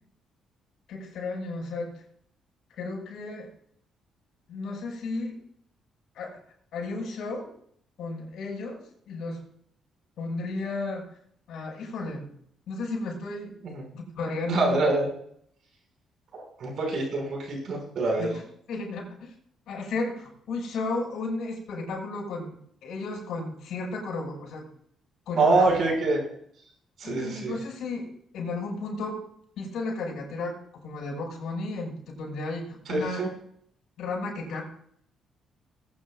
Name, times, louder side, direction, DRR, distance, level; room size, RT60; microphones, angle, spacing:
voice 1, 0.9-2.0 2.8-3.5 4.5-5.4 6.1-6.4 6.7-7.5 8.0-9.4 10.2-11.1 11.5-12.3 12.7-13.5 14.2-14.8 18.2-18.4 18.7-19.3 19.7-24.7 25.3-25.7 27.0-29.2 29.6-33.2 34.0-34.6, left 3 dB, 75° left, -2 dB, 5.9 m, -33 dB
voice 2, 14.5-15.1 16.3-18.3 25.4-26.2 27.0-27.6 32.9-33.3, right 3 dB, 65° right, 1 dB, 5.6 m, -25 dB
21.0 x 9.5 x 2.4 m, 0.66 s
cardioid pair, 90°, 0 cm